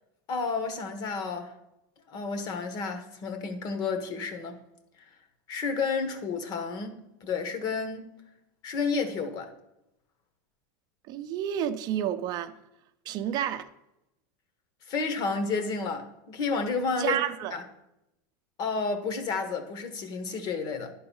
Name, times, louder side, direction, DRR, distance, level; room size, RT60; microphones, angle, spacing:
voice 1, 0.3-1.5 2.1-4.6 5.0-5.1 5.5-8.1 8.6-9.5 14.9-17.2 17.5-17.6 18.6-20.9, left 4 dB, 40° left, 1.3 m, -31 dB
voice 2, 11.1-12.5 13.1-13.7 17.0-17.5, right 10 dB, 40° right, 0.6 m, -30 dB
11.0 x 3.9 x 5.5 m
supercardioid pair, 130°, 10 cm